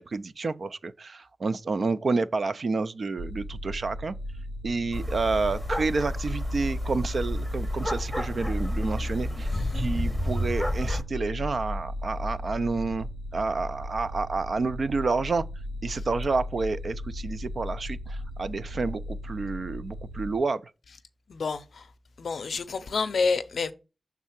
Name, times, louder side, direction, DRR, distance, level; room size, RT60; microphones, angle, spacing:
voice 1, 0.0-4.1 4.6-9.5 9.7-15.4 15.8-20.6, right 3 dB, 55° right, 0.4 m, -29 dB
sound 1, 3.2-20.4, equal, 80° right, 0.7 m, -37 dB
sound 2, 4.9-11.0, left 1 dB, ahead, 0.8 m, -30 dB
voice 2, 9.5-9.9 21.3-21.8 22.2-23.7, left 4 dB, 75° left, 0.5 m, -29 dB
6.4 x 3.6 x 5.8 m
wide cardioid pair, 115°, 0 cm